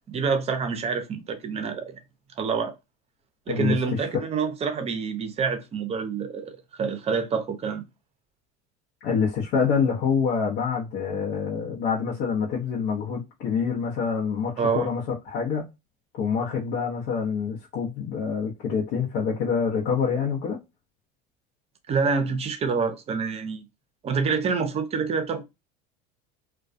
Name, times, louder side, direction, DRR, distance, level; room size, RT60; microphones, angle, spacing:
voice 1, 0.1-2.0 2.4-2.7 3.5-7.8 14.6-14.9 21.9-23.7 24.0-25.4, right 5 dB, 30° right, 0.6 m, -27 dB
voice 2, 3.5-4.3 9.0-15.0 15.3-15.7 16.1-20.6, left 6 dB, 65° left, 0.8 m, -26 dB
2.3 x 2.2 x 2.5 m
supercardioid pair, 105°, 21 cm